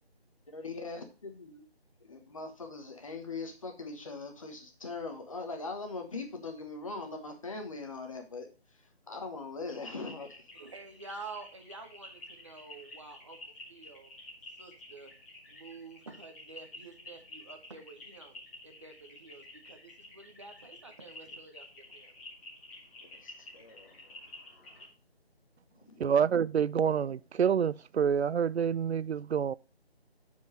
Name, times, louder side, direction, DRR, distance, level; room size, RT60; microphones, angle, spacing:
voice 1, 0.5-1.6 2.0-10.5 23.0-24.2 25.9-26.0, left 3 dB, 30° left, 1.3 m, -41 dB
sound 1, 9.7-24.9, left 2 dB, 15° left, 1.8 m, -50 dB
voice 2, 10.5-14.1 14.5-15.1 15.5-22.2, right 4 dB, 30° right, 1.1 m, -49 dB
voice 3, 26.0-29.5, right 7 dB, 85° right, 0.5 m, -27 dB
7.3 x 4.8 x 5.3 m
figure-of-eight pair, 165°, 32 cm